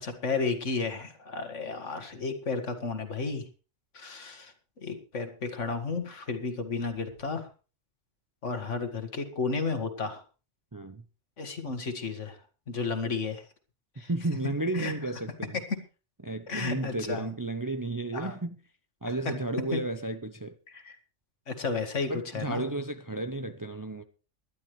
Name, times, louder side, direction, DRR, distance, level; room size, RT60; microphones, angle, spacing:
voice 1, 0.0-3.4 3.9-4.5 4.8-7.4 8.4-10.2 11.4-12.4 12.7-13.4 14.0-14.1 14.7-14.9 16.5-17.2 18.1-18.3 19.7-19.8 20.9-21.0 21.5-22.6, left 4 dB, 75° left, 2.2 m, -32 dB
voice 2, 10.7-11.0 14.0-15.6 16.2-18.6 19.0-20.6 22.1-24.0, right 2 dB, 20° right, 0.5 m, -33 dB
19.5 x 12.0 x 3.2 m
omnidirectional pair, 1.3 m